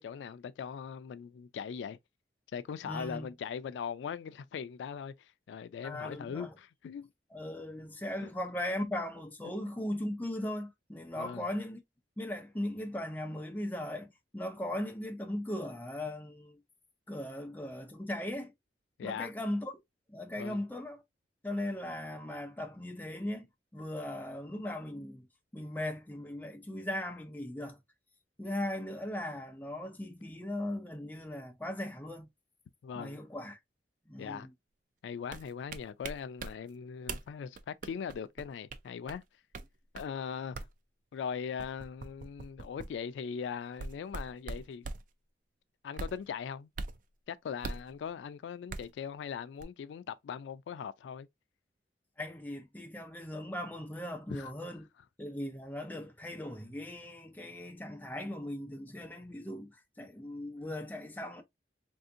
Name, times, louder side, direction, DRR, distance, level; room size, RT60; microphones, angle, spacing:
voice 1, 0.0-2.0 2.5-7.1 8.2-8.3 11.2-11.4 19.0-19.3 20.4-20.6 32.8-33.2 34.2-34.5 35.0-39.2 39.9-40.6 41.1-44.9 45.8-46.7 47.3-51.3 54.3-54.5, left 7 dB, 85° left, 0.3 m, -40 dB
voice 2, 2.8-3.3 5.8-6.5 7.3-11.8 12.2-16.6 17.1-18.5 19.0-19.8 20.1-21.0 21.4-23.5 23.7-25.3 25.5-27.8 28.4-32.3 32.9-33.6 34.1-34.5 52.2-54.9 55.2-61.4, left 1 dB, 10° left, 0.5 m, -38 dB
sound 1, 35.3-36.5 37.1-37.3 37.6-39.2 39.5-39.6 40.0-40.1 40.5-40.7 41.6-42.9 43.7-45.0 45.9-46.2 46.8-47.0 47.6-47.9 48.7-48.9 49.6-49.7, right 3 dB, 50° right, 0.4 m, -40 dB
3.4 x 2.7 x 2.4 m
head